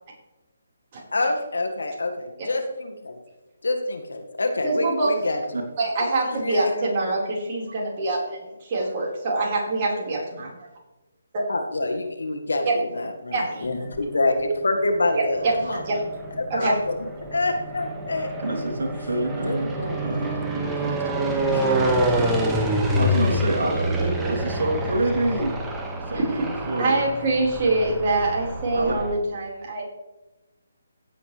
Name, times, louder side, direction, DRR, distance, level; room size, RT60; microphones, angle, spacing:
voice 1, 1.1-3.2 3.6-5.4 6.0-6.9 11.5-15.8 16.4-17.0 17.3-18.3 19.4-20.1 21.5-21.7, left 2 dB, 75° left, 5 dB, 1.9 m, -27 dB
voice 2, 4.6-5.1 5.8-10.7 11.3-11.4 12.6-12.7 13.3-13.7 15.1-16.0 16.5-16.8 26.1-26.2 26.8-29.8, right 2 dB, 35° right, -3 dB, 4.8 m, -25 dB
sound 1, 13.6-14.4 15.1-29.2, right 1 dB, 10° right, 1.7 m, -27 dB
voice 3, 18.4-21.0 22.9-25.6 26.0-27.0 28.7-29.0, right 1 dB, 70° right, 0 dB, 3.3 m, -27 dB
16.5 x 8.7 x 3.4 m, 1.0 s
figure-of-eight pair, 150°, 0 cm